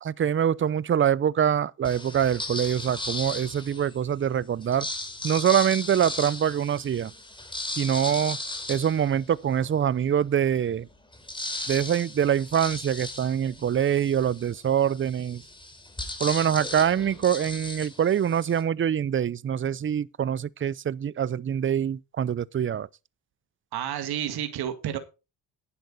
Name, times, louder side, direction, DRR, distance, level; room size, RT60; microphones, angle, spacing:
voice 1, 0.0-4.9 5.2-7.1 7.8-8.4 8.7-10.9 11.7-15.4 16.2-22.9, right 9 dB, 35° right, 0.6 m, -24 dB
sound 1, 1.8-4.0 4.6-9.8 10.3-10.4 10.6-18.6, left 2 dB, 15° left, 4.0 m, -36 dB
voice 2, 23.7-25.0, right 10 dB, 80° right, 2.1 m, -30 dB
11.0 x 8.9 x 4.1 m
cardioid pair, 80°, 37 cm